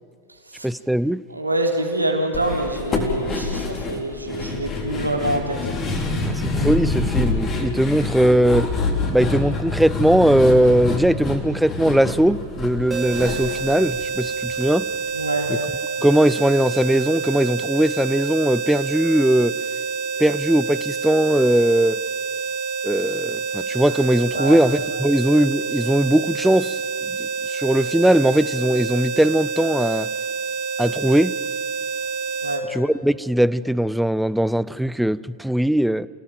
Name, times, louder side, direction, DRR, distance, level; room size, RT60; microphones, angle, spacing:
voice 1, 0.6-1.2 3.9-4.0 6.2-8.7 9.1-14.9 15.5-15.6 16.0-19.6 20.2-22.0 22.8-26.8 27.2-30.1 30.8-31.4 32.7-36.1, right 1 dB, ahead, 0.5 m, -19 dB
voice 2, 1.3-5.6 15.1-15.5 24.3-24.6 32.4-32.7, right 1 dB, 80° right, 3.1 m, -25 dB
sound 1, 2.3-14.6 14.9-15.0 15.4-15.5, left 3 dB, 25° left, 3.9 m, -26 dB
sound 2, 12.9-32.6, right 5 dB, 20° right, 2.5 m, -28 dB
29.0 x 17.5 x 7.6 m
figure-of-eight pair, 90°, 0 cm